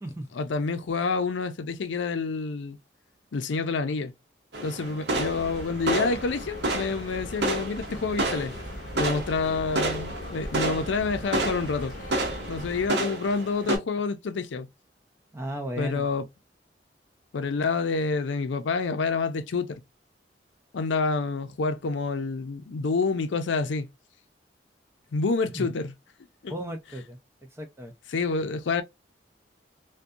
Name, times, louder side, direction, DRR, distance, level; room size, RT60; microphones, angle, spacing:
voice 1, 0.3-2.8 3.3-4.1 4.6-8.5 8.9-11.9 12.5-14.7 15.8-16.2 17.3-19.8 20.7-23.9 25.1-25.9 26.4-26.5 28.1-28.8, left 4 dB, 80° left, 0.4 m, -28 dB
sound 1, 4.5-13.8, right 2 dB, 65° right, 0.8 m, -31 dB
sound 2, 5.1-12.9, left 1 dB, 45° left, 0.7 m, -40 dB
voice 2, 15.3-16.1 25.6-25.7 26.5-27.2 27.6-27.9, right 1 dB, 15° right, 0.3 m, -34 dB
2.6 x 2.2 x 2.3 m
head